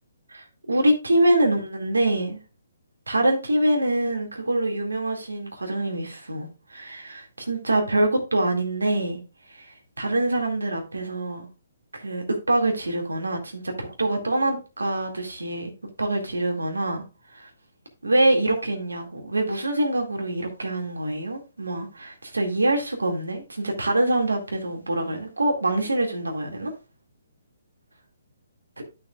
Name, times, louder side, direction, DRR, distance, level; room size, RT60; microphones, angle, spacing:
voice 1, 0.3-2.4 3.1-9.2 9.5-11.5 11.9-15.7 16.0-17.0 17.3-17.5 18.0-26.7, right 1 dB, 85° right, 2.1 m, -25 dB
11.5 x 5.9 x 2.4 m
figure-of-eight pair, 135°, 0 cm